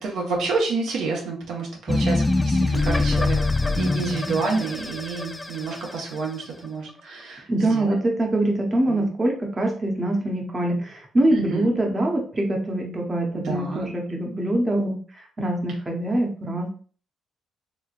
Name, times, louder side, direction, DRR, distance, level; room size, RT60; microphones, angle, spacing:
voice 1, 0.0-3.4 3.7-8.0 8.9-9.1 11.3-11.7 13.3-13.9, right 4 dB, 80° right, -1 dB, 1.1 m, -29 dB
sound 1, 1.9-6.2, left 2 dB, 15° left, 0.4 m, -23 dB
voice 2, 7.5-15.0 15.4-16.7, right 1 dB, 25° right, 1 dB, 0.8 m, -24 dB
3.4 x 3.1 x 2.4 m, 0.42 s
cardioid pair, 90°, 0 cm